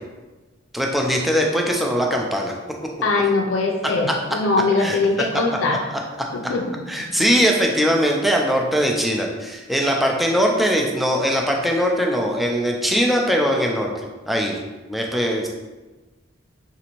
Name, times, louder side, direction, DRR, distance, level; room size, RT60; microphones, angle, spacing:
voice 1, 0.7-2.5 3.8-4.2 4.8-5.3 6.9-14.6 14.9-15.5, equal, ahead, 0 dB, 0.3 m, -21 dB
voice 2, 3.0-5.8 6.3-6.6, left 3 dB, 85° left, 1 dB, 0.4 m, -21 dB
3.9 x 2.5 x 2.9 m, 1.2 s
head